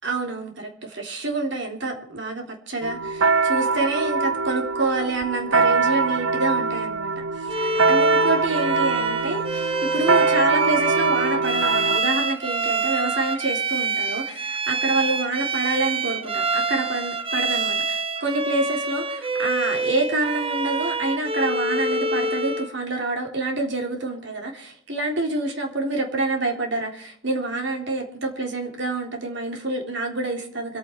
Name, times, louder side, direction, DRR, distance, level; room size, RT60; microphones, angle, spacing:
voice 1, 0.0-7.2 7.6-30.8, right 2 dB, 60° right, 1 dB, 3.8 m, -27 dB
sound 1, 2.8-12.0, right 4 dB, 80° right, 0.7 m, -23 dB
Bowed string instrument, 7.5-22.7, right 3 dB, 25° right, 1.1 m, -26 dB
26.5 x 9.2 x 4.7 m, 0.64 s
head